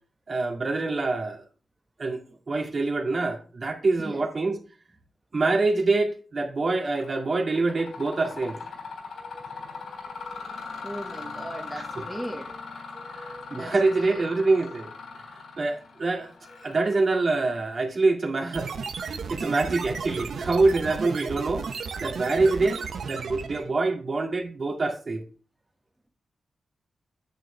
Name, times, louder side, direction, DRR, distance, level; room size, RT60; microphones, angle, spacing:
voice 1, 0.3-1.4 2.0-2.2 2.5-4.6 5.3-8.6 13.1-14.9 15.6-16.3 16.6-18.7 19.0-21.7 22.0-25.2, right 3 dB, 50° right, 2.1 m, -25 dB
Mechanisms, 6.8-7.2 7.5-18.1, left 4 dB, 90° left, 3.5 m, -40 dB
voice 2, 9.2-12.6 12.9-14.4, right 1 dB, 10° right, 1.5 m, -40 dB
sound 1, 18.5-23.7, right 5 dB, 80° right, 1.1 m, -34 dB
9.2 x 7.7 x 3.3 m
cardioid pair, 75°, 0 cm